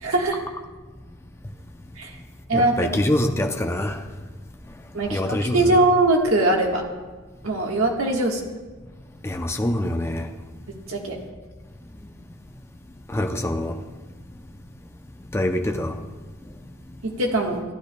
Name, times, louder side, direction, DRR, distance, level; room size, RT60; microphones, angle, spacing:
voice 1, 0.0-0.4 2.0-2.1 2.5-2.7 4.9-6.8 7.4-8.4 10.9-11.2 17.0-17.6, right 2 dB, 75° right, 1.4 m, -21 dB
voice 2, 2.5-4.0 5.1-5.8 9.2-10.3 13.1-13.8 15.3-15.9, left 1 dB, 10° left, 0.5 m, -24 dB
14.5 x 10.0 x 2.2 m
head